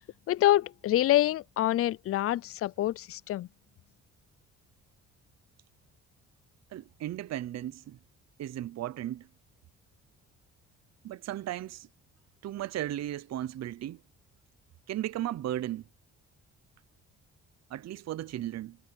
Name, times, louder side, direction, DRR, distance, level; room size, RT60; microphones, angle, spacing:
voice 1, 0.3-3.5, left 14 dB, 50° left, 0.4 m, -26 dB
voice 2, 6.7-8.0 8.4-9.3 11.0-11.9 12.4-14.0 14.9-15.8 17.7-18.8, right 13 dB, 60° right, 0.7 m, -35 dB
cardioid pair, 90°, 30 cm